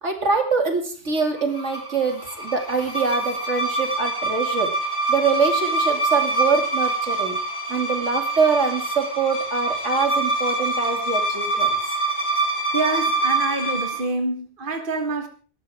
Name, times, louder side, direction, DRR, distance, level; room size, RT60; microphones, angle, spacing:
voice 1, 0.0-4.7 5.1-7.4 7.7-11.8, right 5 dB, 90° right, 2.8 m, -24 dB
sound 1, 1.4-14.1, right 2 dB, 70° left, 3.1 m, -25 dB
voice 2, 12.2-15.3, right 2 dB, 50° right, 1.6 m, -27 dB
19.5 x 13.0 x 3.6 m
omnidirectional pair, 1.2 m